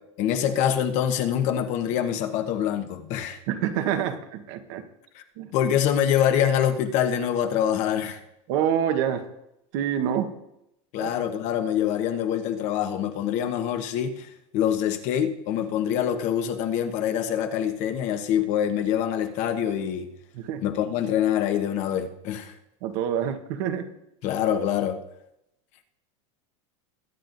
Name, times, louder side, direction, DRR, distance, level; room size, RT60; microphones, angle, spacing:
voice 1, 0.2-3.4 5.1-5.2 5.5-8.2 10.9-20.1 20.6-22.5 24.2-25.0, left 9 dB, 45° left, 7 dB, 1.1 m, -25 dB
voice 2, 3.5-4.9 5.4-5.5 8.5-9.2 9.7-10.3 11.0-11.1 20.3-20.6 22.8-23.9, right 9 dB, 60° right, 8 dB, 1.2 m, -26 dB
21.5 x 8.9 x 2.6 m, 0.82 s
supercardioid pair, 155°, 16 cm